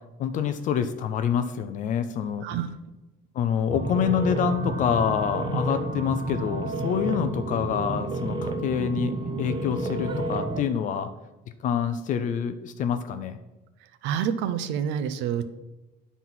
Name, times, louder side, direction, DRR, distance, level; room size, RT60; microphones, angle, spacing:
voice 1, 0.2-2.5 3.3-11.1 11.6-13.4, left 8 dB, 40° left, 10 dB, 0.4 m, -27 dB
sound 1, 3.7-10.6, right 2 dB, 25° right, 0.6 m, -30 dB
voice 2, 14.0-15.5, right 8 dB, 70° right, 11 dB, 0.6 m, -27 dB
9.1 x 4.1 x 5.9 m, 1.1 s
cardioid pair, 170°, 19 cm